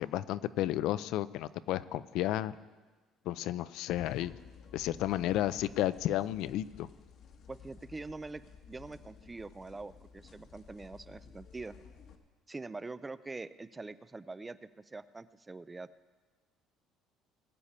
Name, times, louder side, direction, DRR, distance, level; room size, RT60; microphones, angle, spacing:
voice 1, 0.0-2.6 3.3-4.4 4.7-6.9, left 13 dB, 65° left, 15 dB, 0.4 m, -32 dB
sound 1, 4.0-12.2, left 6 dB, 50° left, 1.2 m, -54 dB
voice 2, 7.5-8.4 8.7-11.8 12.5-15.9, right 3 dB, 15° right, 15 dB, 0.3 m, -44 dB
21.0 x 8.6 x 4.3 m, 1.3 s
cardioid pair, 160°, 0 cm